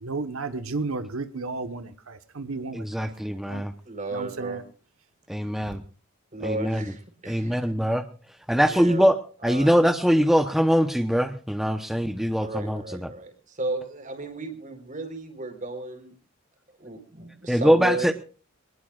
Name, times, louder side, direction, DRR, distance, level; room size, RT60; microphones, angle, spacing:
voice 1, 0.0-1.9 2.4-3.1 3.5-3.6 4.1-4.6 5.7-5.8, right 3 dB, 85° right, 10 dB, 1.2 m, -32 dB
voice 2, 2.7-3.7 5.3-5.8 6.4-6.8 7.3-8.0 8.5-9.2 9.4-13.1 17.5-18.1, equal, ahead, 8 dB, 0.8 m, -22 dB
voice 3, 3.8-4.6 6.3-7.7 8.6-9.1 9.4-9.8 12.4-16.2 16.8-18.1, right 2 dB, 35° right, 8 dB, 4.0 m, -34 dB
24.0 x 20.0 x 2.4 m, 0.38 s
head